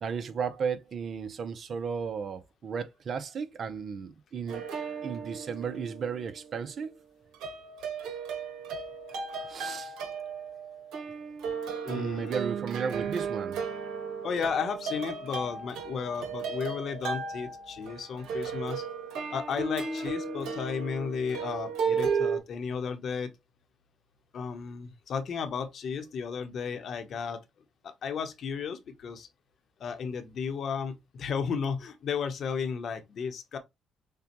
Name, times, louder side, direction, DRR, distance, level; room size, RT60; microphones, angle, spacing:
voice 1, 0.0-4.6 5.0-6.9 9.5-9.9 11.9-13.6, right 6 dB, 55° right, 0.7 m, -34 dB
sound 1, 4.5-6.9 7.3-22.4, right 5 dB, 80° right, 1.1 m, -35 dB
voice 2, 11.8-12.3 14.2-18.9 19.3-23.3 24.3-27.4 27.8-29.3 29.8-33.6, left 6 dB, 60° left, 0.9 m, -34 dB
6.7 x 2.3 x 2.9 m
supercardioid pair, 75°, 0 cm